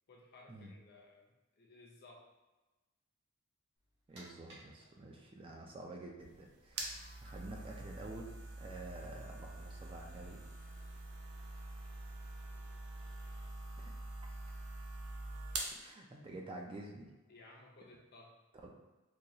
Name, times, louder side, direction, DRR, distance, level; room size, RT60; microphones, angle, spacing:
voice 1, 0.1-2.2 17.3-18.3, left 2 dB, 45° left, -1 dB, 0.6 m, -58 dB
sound 1, 3.8-13.5, right 1 dB, 55° right, 1.0 m, -65 dB
voice 2, 4.1-8.3 8.6-10.4 13.8-13.9 15.7-17.1 18.6-18.7, right 2 dB, 25° right, -1 dB, 0.4 m, -49 dB
sound 2, 6.2-15.8, right 2 dB, 80° right, 0.6 m, -45 dB
3.9 x 2.3 x 2.9 m, 1.1 s
head